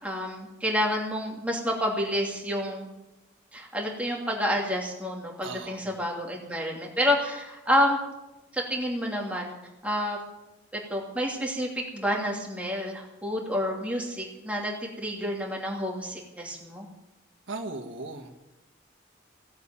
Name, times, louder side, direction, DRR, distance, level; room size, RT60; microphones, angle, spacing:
voice 1, 0.0-2.9 3.5-8.0 8.5-9.5 9.8-10.2 10.9-16.9, equal, 5° right, -1 dB, 2.7 m, -29 dB
voice 2, 5.4-5.8 17.5-18.3, right 3 dB, 85° right, 3 dB, 1.5 m, -37 dB
16.5 x 8.4 x 8.9 m, 0.96 s
head